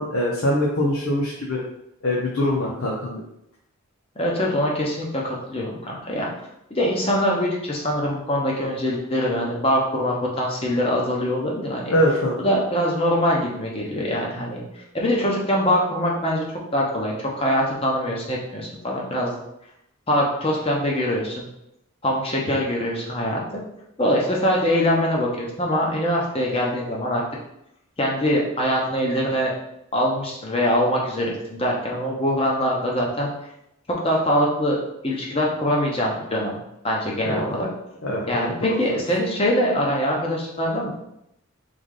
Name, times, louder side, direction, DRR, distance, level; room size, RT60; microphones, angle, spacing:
voice 1, 0.0-1.6 2.0-3.2 11.9-12.4 37.2-37.4 38.0-39.0, left 1 dB, 70° left, -3 dB, 0.7 m, -23 dB
voice 2, 4.2-6.3 6.7-11.9 12.4-14.6 14.9-16.4 16.7-19.4 20.1-21.5 22.0-23.4 24.0-27.2 28.0-29.5 29.9-33.3 34.0-34.8 35.0-36.5 36.8-37.7 38.3-40.9, equal, 25° left, -3 dB, 0.9 m, -23 dB
3.8 x 3.4 x 3.8 m, 0.82 s
head